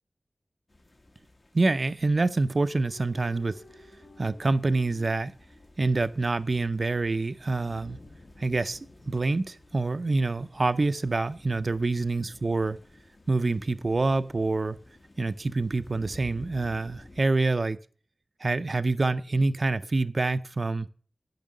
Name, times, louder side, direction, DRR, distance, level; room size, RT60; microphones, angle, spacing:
sound 1, 0.7-17.2, left 1 dB, 50° left, 1.3 m, -53 dB
voice 1, 1.5-3.6 4.2-5.4 5.8-8.0 8.4-8.8 9.1-12.8 13.3-14.8 15.2-17.8 18.4-20.9, right 3 dB, 60° right, 0.4 m, -26 dB
sound 2, 2.6-6.3 7.7-11.4 12.2-13.5, left 3 dB, 75° left, 1.1 m, -57 dB
8.9 x 5.8 x 6.4 m
cardioid pair, 40°, 0 cm